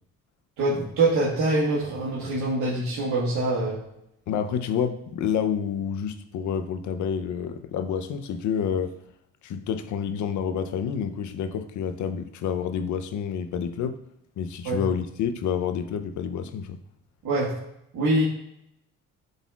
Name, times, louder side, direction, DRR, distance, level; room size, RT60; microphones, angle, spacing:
voice 1, 0.6-3.8 14.6-14.8 17.2-17.5 17.9-18.2, right 2 dB, 80° right, -7 dB, 1.6 m, -24 dB
voice 2, 4.3-8.9 9.4-14.0 14.4-16.8, left 7 dB, 75° left, 8 dB, 0.7 m, -28 dB
11.0 x 4.1 x 2.4 m, 0.79 s
cardioid pair, 90°, 30 cm